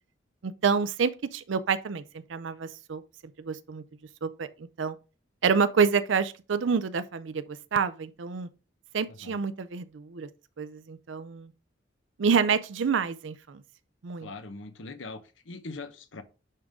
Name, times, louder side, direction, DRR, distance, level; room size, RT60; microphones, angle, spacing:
voice 1, 0.4-3.0 3.4-3.8 4.2-5.0 5.4-8.5 8.9-10.3 10.6-11.5 12.2-13.6 14.0-14.3, right 6 dB, 70° right, 0.5 m, -28 dB
voice 2, 9.1-9.4 14.2-16.2, left 3 dB, 80° left, 1.0 m, -41 dB
11.0 x 3.8 x 3.6 m
head